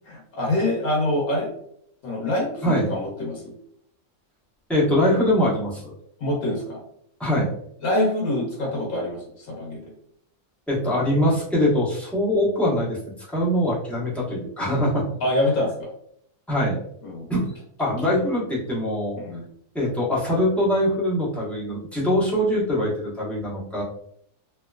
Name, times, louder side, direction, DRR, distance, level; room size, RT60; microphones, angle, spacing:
voice 1, 0.0-1.5 2.0-3.5 6.2-6.8 7.8-9.9 15.2-15.9 17.0-17.3 18.0-18.1 19.2-19.4, left 1 dB, 70° left, -2 dB, 1.4 m, -25 dB
voice 2, 4.7-5.9 7.2-7.5 10.7-13.0 13.3-15.0 16.5-16.8 17.3-17.5 17.8-19.2 19.7-23.8, left 1 dB, ahead, -7 dB, 0.9 m, -23 dB
3.1 x 2.9 x 2.3 m, 0.68 s
omnidirectional pair, 1.6 m